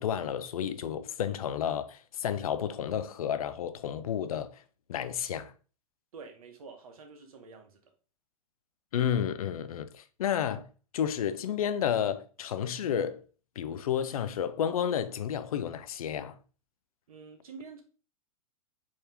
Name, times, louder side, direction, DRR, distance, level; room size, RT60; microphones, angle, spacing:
voice 1, 0.0-4.5 4.9-5.5 8.9-10.7 10.9-13.2 13.6-16.4, left 9 dB, 85° left, 0.5 m, -31 dB
voice 2, 6.1-7.8 17.1-17.8, right 4 dB, 80° right, 1.1 m, -48 dB
3.5 x 2.8 x 3.4 m
hypercardioid pair, 125°, 18 cm